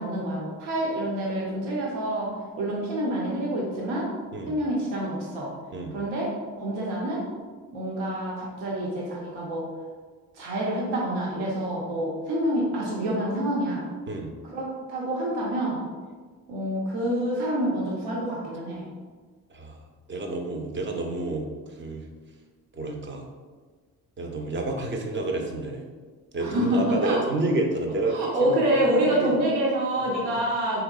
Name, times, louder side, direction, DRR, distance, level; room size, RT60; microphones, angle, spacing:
voice 1, 0.0-2.3 2.6-4.1 4.5-5.5 5.9-7.2 7.7-9.7 10.3-13.8 14.4-15.8 16.5-18.9 26.4-27.2 28.1-30.8, right 1 dB, 75° right, -4 dB, 0.7 m, -27 dB
voice 2, 20.1-22.0 22.7-23.3 24.2-25.8 26.3-28.6 29.1-29.3, right 2 dB, 25° right, 3 dB, 0.5 m, -29 dB
3.4 x 2.8 x 2.3 m, 1.5 s
hypercardioid pair, 45°, 43 cm